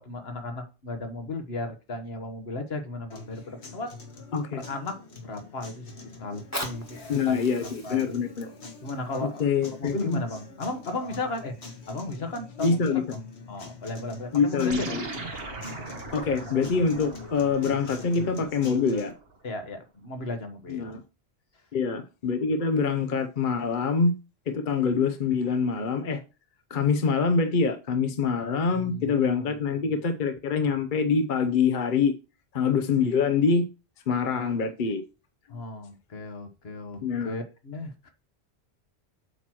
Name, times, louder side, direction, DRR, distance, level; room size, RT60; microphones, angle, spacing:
voice 1, 0.0-3.9 4.7-5.0 5.2-5.9 6.2-8.1 8.4-8.5 8.8-11.5 11.9-13.2 13.5-15.0 19.4-20.9 28.7-29.9 35.5-38.1, left 2 dB, 70° left, 1.5 m, -35 dB
sound 1, 3.1-19.1, left 3 dB, 85° left, 1.6 m, -44 dB
voice 2, 4.3-4.6 7.1-8.5 9.2-10.2 12.6-13.0 14.3-15.0 16.1-19.1 20.7-21.0 21.7-24.1 24.5-26.2 26.7-32.1 32.5-33.7 34.1-35.0 37.0-37.3, left 5 dB, 55° left, 0.8 m, -25 dB
Fire, 6.3-11.2 11.9-12.0, left 1 dB, 15° left, 1.3 m, -41 dB
sound 2, 14.7-19.4, right 3 dB, 65° right, 1.4 m, -40 dB
8.0 x 3.0 x 6.1 m
omnidirectional pair, 1.1 m